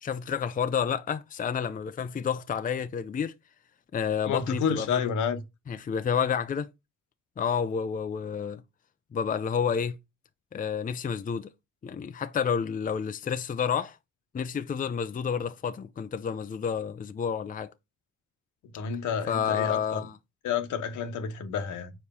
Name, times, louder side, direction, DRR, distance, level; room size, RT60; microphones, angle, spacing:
voice 1, 0.0-3.3 3.9-5.1 5.7-6.7 7.4-8.6 9.1-10.0 10.5-11.5 11.8-14.0 14.3-17.7 19.3-20.2, left 7 dB, 30° left, 0.5 m, -29 dB
voice 2, 4.2-5.4 18.7-20.0 20.4-21.9, left 7 dB, 80° left, 1.2 m, -30 dB
4.8 x 4.3 x 5.4 m
cardioid pair, 90°, 30 cm